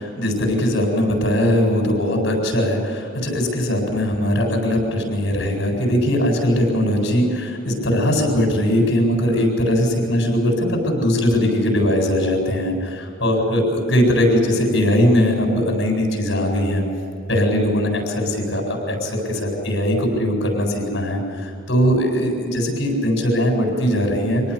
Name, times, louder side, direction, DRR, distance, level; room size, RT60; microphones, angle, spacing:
voice 1, 0.0-16.8 17.3-24.4, equal, 60° left, 1 dB, 7.9 m, -20 dB
26.0 x 18.5 x 8.6 m, 2.2 s
head